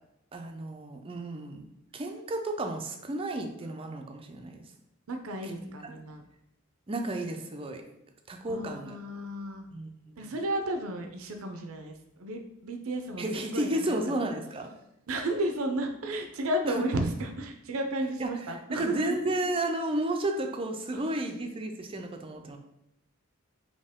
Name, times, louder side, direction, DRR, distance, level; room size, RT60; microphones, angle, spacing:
voice 1, 0.3-1.6 1.9-4.7 5.4-5.9 6.9-7.8 8.3-9.0 9.7-10.4 13.2-14.7 16.6-16.8 18.2-22.6, right 1 dB, 25° right, 4 dB, 0.4 m, -33 dB
voice 2, 5.1-6.2 8.5-9.6 10.2-13.2 13.5-14.0 15.1-19.2, right 1 dB, 85° right, 4 dB, 0.5 m, -33 dB
4.3 x 2.9 x 3.6 m, 0.85 s
head